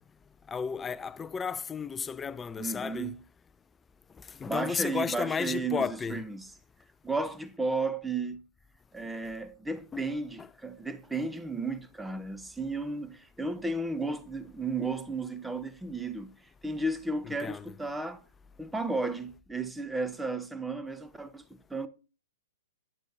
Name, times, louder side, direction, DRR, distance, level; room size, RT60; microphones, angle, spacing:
voice 1, 0.5-3.1 4.4-6.2 9.9-10.0 10.4-10.5 17.2-17.7, left 6 dB, 15° left, 0.4 m, -33 dB
voice 2, 2.6-3.1 4.5-6.4 7.0-8.4 8.9-16.3 16.6-18.2 18.6-21.9, right 3 dB, 5° right, 0.9 m, -34 dB
11.5 x 9.8 x 2.7 m
hypercardioid pair, 120°, 0 cm